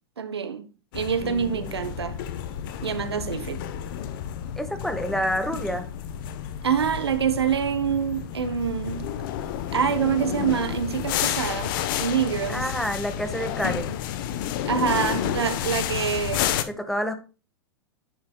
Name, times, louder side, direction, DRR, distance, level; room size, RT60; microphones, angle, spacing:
voice 1, 0.2-0.7 0.9-2.2 2.8-3.6 6.6-9.1 9.7-12.6 14.7-16.5, right 7 dB, 85° right, 1.0 m, -26 dB
sound 1, 0.9-16.6, left 10 dB, 55° left, 1.0 m, -31 dB
voice 2, 1.2-2.2 4.6-5.9 12.5-14.0 16.8-17.1, equal, ahead, 1.5 m, -29 dB
9.5 x 7.4 x 2.3 m
hypercardioid pair, 100°, 13 cm